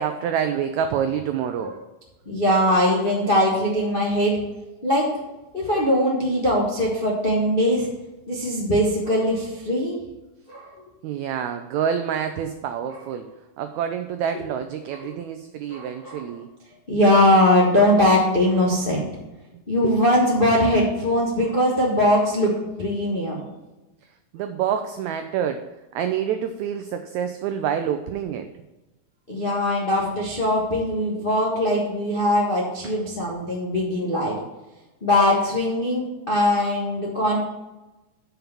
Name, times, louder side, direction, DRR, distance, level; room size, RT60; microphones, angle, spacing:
voice 1, 0.0-1.7 11.0-13.3 13.6-16.5 19.8-19.9 24.3-25.7 25.9-28.5 32.8-33.0, right 8 dB, 90° right, 8 dB, 1.6 m, -27 dB
voice 2, 2.2-4.4 4.8-5.2 5.5-7.9 8.3-10.0 10.5-10.7 12.9-13.0 14.3-14.5 14.9-15.1 15.7-16.3 16.9-19.1 19.7-23.4 29.3-34.3 35.0-37.4, left 1 dB, 60° left, -4 dB, 0.5 m, -21 dB
7.0 x 5.8 x 6.9 m, 1.0 s
omnidirectional pair, 3.9 m